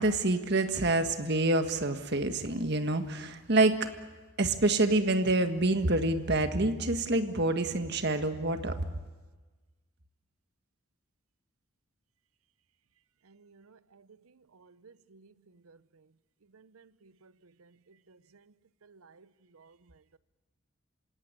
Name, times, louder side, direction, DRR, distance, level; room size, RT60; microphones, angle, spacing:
voice 1, 0.0-3.9 4.4-8.8, right 2 dB, 50° right, 1.7 m, -27 dB
voice 2, 13.3-14.1 14.5-15.3 15.6-15.8 16.5-18.4 18.8-19.3 19.5-19.8, right 4 dB, 85° right, 0.7 m, -58 dB
27.5 x 17.5 x 9.9 m
head